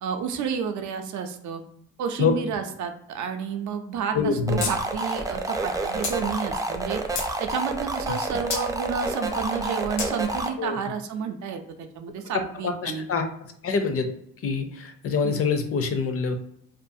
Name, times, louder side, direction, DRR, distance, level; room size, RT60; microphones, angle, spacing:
voice 1, 0.0-1.6 2.0-7.0 7.4-13.1 15.2-15.4, right 6 dB, 70° right, 6 dB, 0.5 m, -31 dB
voice 2, 4.1-4.7 10.6-10.8 12.3-13.3 13.6-14.1 14.4-16.4, left 5 dB, 50° left, 7 dB, 0.5 m, -25 dB
sound 1, 4.5-10.5, right 2 dB, 10° right, 0.3 m, -29 dB
sound 2, 4.6-4.7 5.0-5.1 6.0-6.2 6.8-7.3 8.5-8.7 10.0-10.1, left 4 dB, 75° left, 0.8 m, -29 dB
2.5 x 2.3 x 2.6 m, 0.70 s
cardioid pair, 90°, 30 cm